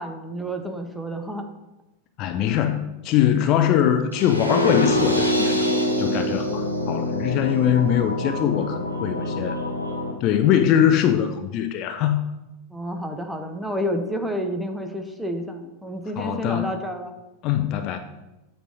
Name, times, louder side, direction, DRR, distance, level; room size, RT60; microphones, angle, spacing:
voice 1, 0.0-1.5 12.7-17.1, equal, 5° right, 5 dB, 0.7 m, -30 dB
voice 2, 2.2-9.6 10.2-12.2 16.2-16.7 17.4-18.0, left 10 dB, 40° left, 8 dB, 0.3 m, -22 dB
sound 1, 4.1-10.1, left 1 dB, 90° right, 0.8 m, -25 dB
7.9 x 3.3 x 3.9 m, 0.99 s
figure-of-eight pair, 90°, 0 cm